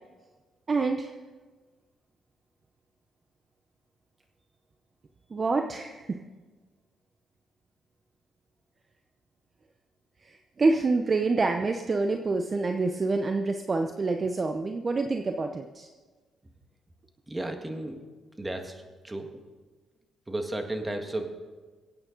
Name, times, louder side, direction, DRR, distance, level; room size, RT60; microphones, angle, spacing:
voice 1, 0.7-1.1 5.3-6.2 10.2-15.9, right 3 dB, 35° right, 5 dB, 0.7 m, -27 dB
voice 2, 17.3-18.0 18.3-19.3 20.3-21.3, right 1 dB, 15° right, 5 dB, 1.7 m, -34 dB
23.0 x 8.8 x 3.9 m, 1.3 s
cardioid pair, 90°, 0 cm